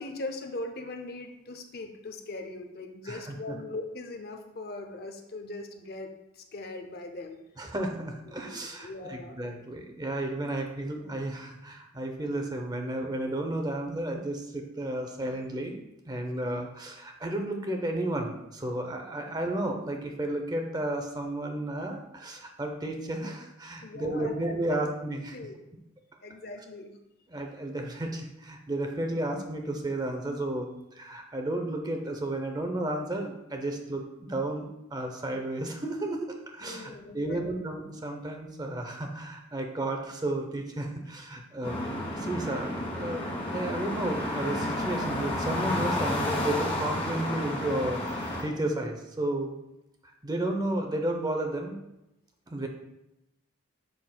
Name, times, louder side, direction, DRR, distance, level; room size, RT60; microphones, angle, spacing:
voice 1, 0.0-7.4 8.4-9.4 23.8-24.8 25.3-25.6 26.2-27.0 36.6-37.4, left 2 dB, 45° left, 5 dB, 0.6 m, -40 dB
voice 2, 3.1-3.6 7.6-25.4 27.3-41.8 42.1-49.5 50.2-51.8 52.5-52.7, right 1 dB, 20° right, 4 dB, 0.6 m, -33 dB
sound 1, 41.6-48.4, left 1 dB, 25° left, 1.4 m, -31 dB
7.5 x 5.9 x 2.3 m, 0.90 s
head